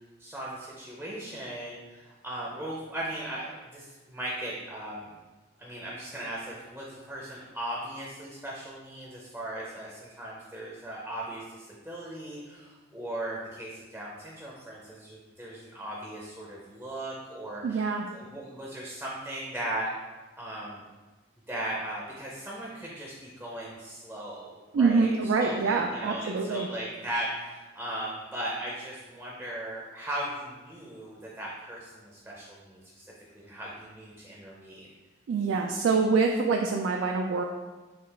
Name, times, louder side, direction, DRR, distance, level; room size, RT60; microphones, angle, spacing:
voice 1, 0.2-2.0 2.2-5.1 5.6-17.9 18.1-19.9 20.4-20.8 21.5-24.5 24.8-32.7 33.4-34.9, right 1 dB, 10° right, -5 dB, 0.5 m, -38 dB
voice 2, 17.6-18.1 24.7-26.7 35.3-37.4, right 4 dB, 85° right, 2 dB, 0.3 m, -25 dB
5.5 x 2.4 x 3.3 m, 1.2 s
head